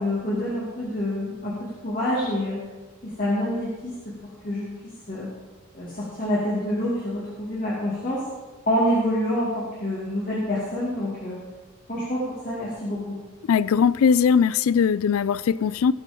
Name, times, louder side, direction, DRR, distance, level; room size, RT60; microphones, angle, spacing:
voice 1, 0.0-2.6 3.0-4.0 4.2-4.7 5.1-5.3 5.7-8.2 8.7-11.4 11.9-13.2, equal, 40° left, -8 dB, 2.5 m, -27 dB
voice 2, 13.5-15.9, left 6 dB, 80° left, 19 dB, 0.3 m, -20 dB
17.5 x 6.2 x 5.3 m, 1.3 s
head